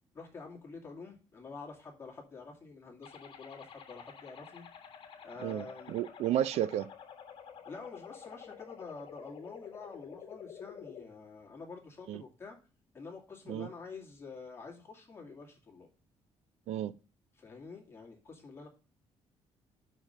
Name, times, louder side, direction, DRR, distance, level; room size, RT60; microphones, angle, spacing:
voice 1, 0.1-4.6 5.2-6.0 7.7-12.6 12.9-15.9 17.3-18.7, left 4 dB, 25° left, 2.3 m, -48 dB
sound 1, 3.0-11.0, left 7 dB, 50° left, 1.5 m, -50 dB
voice 2, 5.4-6.9 12.1-12.2 13.5-13.7 16.7-16.9, right 11 dB, 80° right, 0.4 m, -32 dB
5.7 x 5.0 x 6.5 m
cardioid pair, 160°, 11 cm